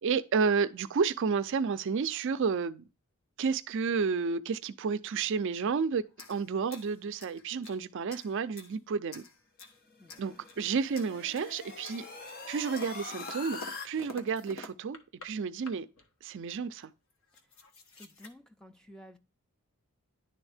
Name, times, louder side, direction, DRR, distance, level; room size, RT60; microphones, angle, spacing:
voice 1, 0.0-2.8 3.4-6.0 6.3-9.2 10.2-12.0 12.5-15.0 15.2-15.9 16.2-16.9, right 5 dB, 55° right, 0.4 m, -31 dB
sound 1, 6.1-7.8 8.1-8.8 9.1-9.8 10.1-10.7 10.9-11.5 11.8-15.3 15.6-16.1 16.8-16.9 17.1-18.3, left 2 dB, 60° left, 1.0 m, -49 dB
sound 2, 9.9-13.9, left 4 dB, 40° left, 0.8 m, -43 dB
voice 2, 18.0-19.2, equal, 5° left, 0.5 m, -52 dB
10.5 x 3.5 x 3.3 m
head